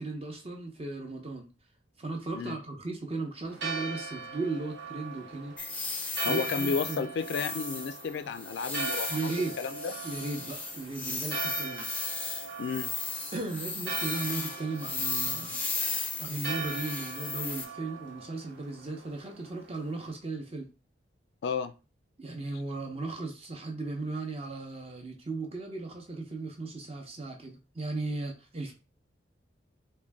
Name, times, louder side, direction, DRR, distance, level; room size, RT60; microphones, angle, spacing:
voice 1, 0.0-1.5 2.0-5.5 6.3-7.1 9.1-9.6 10.0-11.9 13.3-15.6 16.2-20.7 22.2-28.7, right 3 dB, 30° right, 0.7 m, -36 dB
Church bell, 3.5-20.1, right 4 dB, 75° right, 1.2 m, -41 dB
sound 1, 5.6-17.6, left 3 dB, 10° left, 0.5 m, -35 dB
voice 2, 6.2-9.3 9.6-9.9 12.6-12.9 21.4-21.7, left 5 dB, 65° left, 0.3 m, -32 dB
3.7 x 2.2 x 3.4 m
head